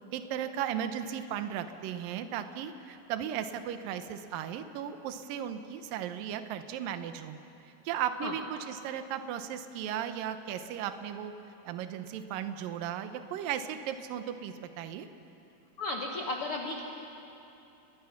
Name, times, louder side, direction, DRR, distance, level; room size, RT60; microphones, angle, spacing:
voice 1, 0.1-7.4 7.9-11.3 11.7-15.1, right 9 dB, 70° right, 9 dB, 2.5 m, -36 dB
voice 2, 15.8-16.8, left 2 dB, 55° left, 0 dB, 1.5 m, -34 dB
29.5 x 21.5 x 5.9 m, 2.9 s
omnidirectional pair, 4.5 m